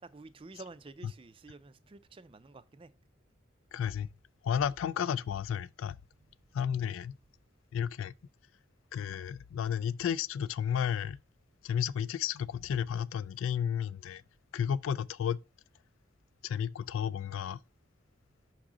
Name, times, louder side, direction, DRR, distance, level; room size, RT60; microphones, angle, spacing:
voice 1, 0.0-2.9, right 3 dB, 25° right, 0.4 m, -50 dB
voice 2, 3.7-4.1 4.4-6.0 6.5-7.1 7.7-8.1 8.9-11.2 11.6-14.2 14.5-15.4 16.4-17.6, left 8 dB, 90° left, 0.3 m, -32 dB
6.1 x 4.7 x 3.7 m
head